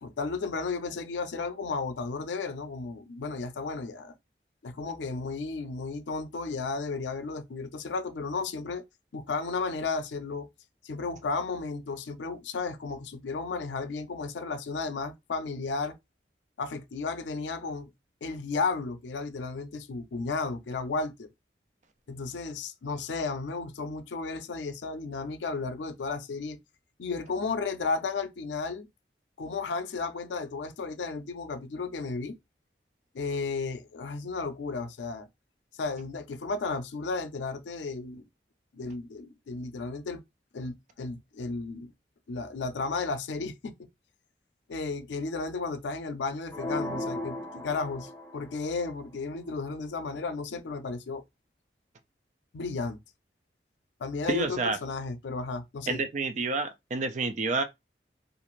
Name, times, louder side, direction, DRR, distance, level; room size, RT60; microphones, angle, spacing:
voice 1, 0.0-4.2 4.6-8.8 9.1-10.5 10.8-16.0 16.6-17.9 18.2-21.3 22.1-26.6 27.0-28.9 29.4-32.4 33.1-35.3 35.8-38.3 38.7-40.2 40.5-41.9 42.3-43.7 44.7-51.2 52.5-53.0 54.0-56.0, left 4 dB, 90° left, 0.4 m, -33 dB
sound 1, 46.5-48.6, left 1 dB, 10° left, 0.5 m, -35 dB
voice 2, 54.3-54.8 55.9-57.6, right 3 dB, 40° right, 0.4 m, -29 dB
2.5 x 2.5 x 3.0 m
head